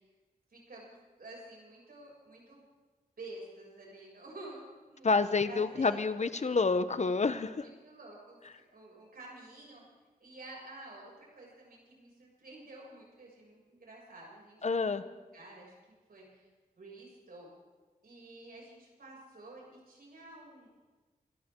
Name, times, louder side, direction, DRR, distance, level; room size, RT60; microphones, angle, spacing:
voice 1, 0.5-2.6 3.2-5.1 5.4-6.0 7.5-8.4 8.7-9.8 10.2-15.7 16.1-16.5 16.8-17.5 18.0-20.7, right 2 dB, 70° right, -3 dB, 6.9 m, -50 dB
voice 2, 5.0-7.7 14.6-15.0, left 4 dB, 45° left, 12 dB, 1.0 m, -28 dB
27.0 x 14.0 x 3.8 m, 1.3 s
cardioid pair, 55°, 16 cm